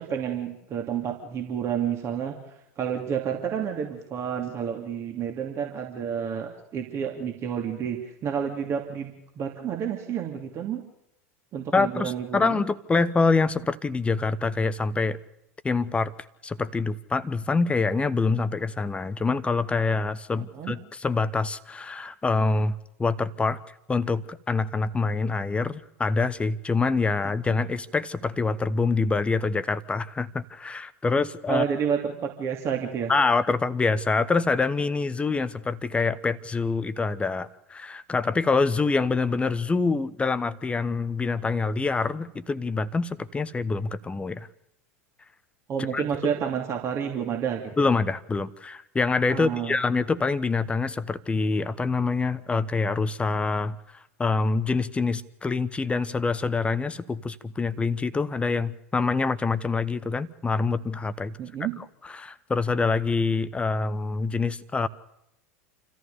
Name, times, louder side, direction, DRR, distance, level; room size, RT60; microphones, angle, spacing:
voice 1, 0.0-2.4 2.8-10.8 11.5-12.6 20.3-20.7 31.5-33.1 45.7-47.9 49.3-49.8 61.4-61.7, right 8 dB, 35° right, 2 dB, 2.7 m, -30 dB
voice 2, 11.7-15.2 15.6-16.1 16.4-23.6 23.9-31.7 33.1-44.5 45.9-46.0 47.8-53.8 54.2-61.4 62.1-64.9, left 4 dB, 15° left, 15 dB, 1.1 m, -25 dB
28.5 x 14.5 x 6.9 m, 0.85 s
figure-of-eight pair, 85°, 8 cm